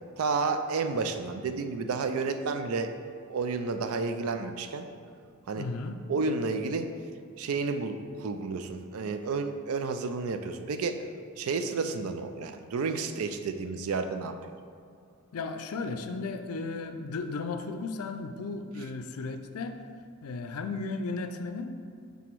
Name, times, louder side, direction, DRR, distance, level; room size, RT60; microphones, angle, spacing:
voice 1, 0.2-2.9 3.2-4.8 5.5-5.7 6.1-6.9 7.4-11.0 11.4-14.4, right 4 dB, 80° right, 8 dB, 0.4 m, -31 dB
voice 2, 5.5-6.0 15.3-19.8 20.2-21.7, left 3 dB, 90° left, 8 dB, 0.4 m, -35 dB
5.9 x 3.5 x 4.6 m, 2.3 s
head